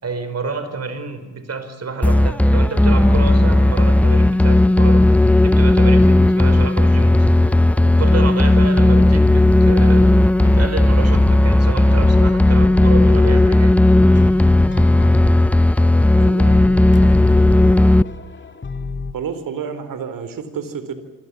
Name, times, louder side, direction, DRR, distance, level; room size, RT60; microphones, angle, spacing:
voice 1, 0.0-7.3 7.8-13.8, right 4 dB, 40° right, 10 dB, 5.1 m, -29 dB
sound 1, 2.0-18.0, left 1 dB, 5° left, 0.7 m, -13 dB
sound 2, 5.8-7.0 7.4-9.3 9.7-11.6 11.9-19.1, left 3 dB, 30° left, 2.3 m, -31 dB
voice 2, 16.1-16.7 17.0-17.3 19.1-20.9, right 7 dB, 55° right, 11 dB, 4.2 m, -30 dB
27.5 x 20.5 x 7.6 m, 1.2 s
hypercardioid pair, 50°, 39 cm